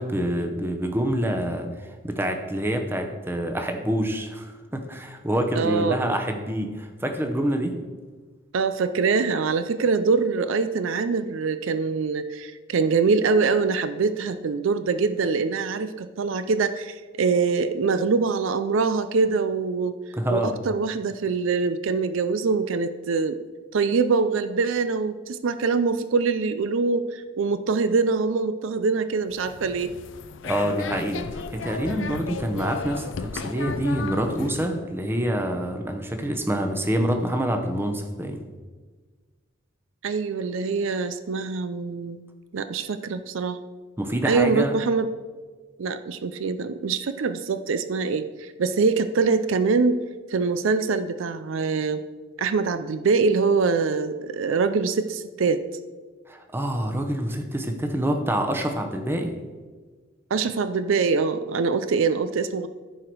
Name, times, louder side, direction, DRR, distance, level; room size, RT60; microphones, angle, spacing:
voice 1, 0.0-7.7 20.2-20.5 30.4-38.4 44.0-44.7 56.3-59.3, right 1 dB, 10° right, 4 dB, 0.8 m, -26 dB
voice 2, 5.6-6.2 8.5-20.0 20.3-23.4 23.7-29.9 40.0-42.2 42.5-43.6 44.2-45.1 45.8-50.0 50.3-52.0 52.4-55.6 60.3-62.7, right 4 dB, 70° right, 11 dB, 0.4 m, -24 dB
sound 1, 29.3-34.7, left 5 dB, 60° left, 0.4 m, -35 dB
14.5 x 4.8 x 4.6 m, 1.4 s
head